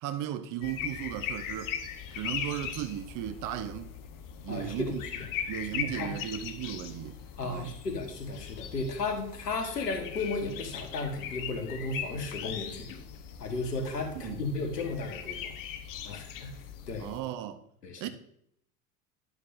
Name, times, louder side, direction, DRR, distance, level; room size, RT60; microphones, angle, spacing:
voice 1, 0.0-1.7 2.1-3.9 4.4-5.0 5.5-7.7 14.2-14.4 17.0-17.6 18.0-18.1, right 12 dB, 40° right, 0.8 m, -36 dB
sound 1, 0.6-17.2, left 8 dB, 45° left, 1.1 m, -40 dB
voice 2, 4.5-5.3 5.7-6.1 7.4-13.0 13.4-15.5 16.0-16.5 16.9-17.1 17.8-18.1, left 3 dB, 85° left, 1.6 m, -34 dB
11.5 x 8.1 x 2.7 m
hypercardioid pair, 80°, 46 cm